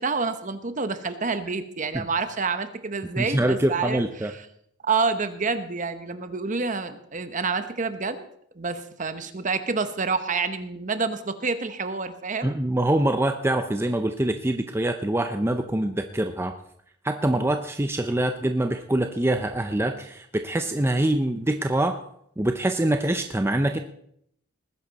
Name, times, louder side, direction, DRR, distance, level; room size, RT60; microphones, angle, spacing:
voice 1, 0.0-4.3 4.8-8.3 8.5-12.6, right 4 dB, 40° right, 10 dB, 1.0 m, -28 dB
voice 2, 3.2-4.3 12.4-16.6 17.0-22.0 22.4-23.8, right 1 dB, 15° right, 6 dB, 0.6 m, -24 dB
19.5 x 10.0 x 4.1 m, 0.69 s
head